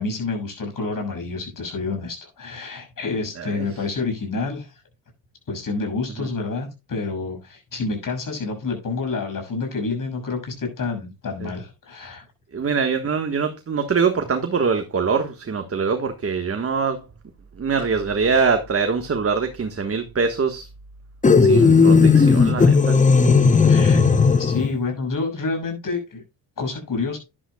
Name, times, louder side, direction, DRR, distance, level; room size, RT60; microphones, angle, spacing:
voice 1, 0.0-4.8 5.5-12.3 23.6-26.2 26.6-27.2, left 3 dB, 45° left, 6.5 m, -28 dB
voice 2, 12.5-17.0 17.6-20.7 21.4-23.0, right 5 dB, 30° right, 1.4 m, -23 dB
sound 1, 21.2-24.7, left 5 dB, 15° left, 0.9 m, -15 dB
11.0 x 11.0 x 2.3 m
cardioid pair, 95°, 46 cm